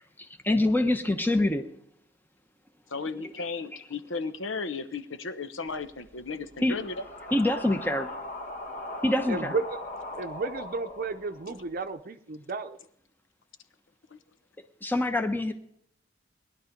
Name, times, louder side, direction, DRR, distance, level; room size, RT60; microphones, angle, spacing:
voice 1, 0.2-1.6 3.1-3.2 6.6-6.8 7.3-8.1 9.0-9.6 14.8-15.5, left 1 dB, 10° left, 6 dB, 0.9 m, -25 dB
voice 2, 2.9-6.9 14.1-14.2, left 4 dB, 85° left, 11 dB, 1.1 m, -35 dB
sound 1, 5.7-11.8, left 1 dB, 45° left, 1.4 m, -40 dB
voice 3, 9.3-9.8 10.2-12.8, right 3 dB, 50° right, 7 dB, 0.7 m, -33 dB
20.0 x 11.5 x 5.2 m, 0.73 s
head